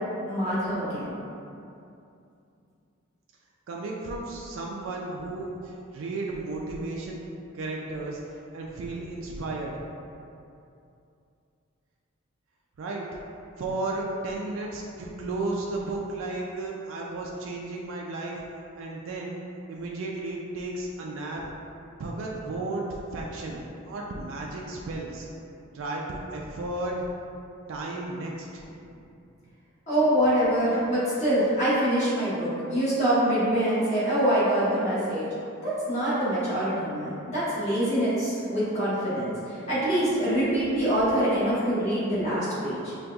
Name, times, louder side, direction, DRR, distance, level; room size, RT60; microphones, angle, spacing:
voice 1, 0.3-1.1 29.9-35.3 35.6-42.8, right 1 dB, 30° left, -12 dB, 1.4 m, -25 dB
voice 2, 3.7-7.2 7.5-8.2 8.5-9.7 12.8-13.1 13.6-18.4 18.7-19.4 19.7-21.5 22.0-22.9 23.1-25.3 25.7-27.0 27.7-29.0, right 2 dB, 65° right, -2 dB, 0.3 m, -34 dB
5.2 x 2.5 x 2.3 m, 2.6 s
head